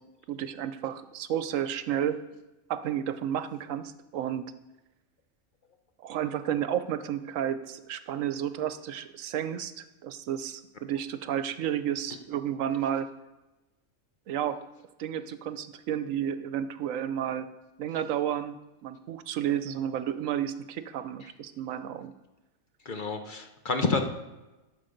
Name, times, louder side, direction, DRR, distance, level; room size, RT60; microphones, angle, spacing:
voice 1, 0.3-2.2 2.7-4.5 6.0-13.1 14.3-14.6 15.0-17.5 17.8-18.6 18.8-22.1, right 10 dB, 75° right, 12 dB, 1.0 m, -31 dB
voice 2, 22.8-24.0, left 4 dB, 45° left, 5 dB, 0.9 m, -28 dB
12.0 x 6.9 x 5.1 m, 1.1 s
omnidirectional pair, 1.4 m